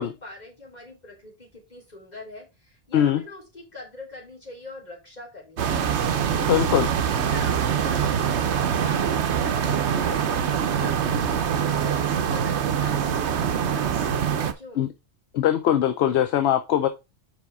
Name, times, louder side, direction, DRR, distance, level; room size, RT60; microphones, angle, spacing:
voice 1, 0.0-6.1 7.1-14.9, left 2 dB, 35° left, 3.5 m, -43 dB
sound 1, 5.6-14.5, right 8 dB, 70° right, 1.0 m, -24 dB
voice 2, 6.4-6.9 14.8-14.9 15.3-16.9, left 11 dB, 70° left, 0.9 m, -21 dB
5.2 x 5.0 x 4.8 m
omnidirectional pair, 1.2 m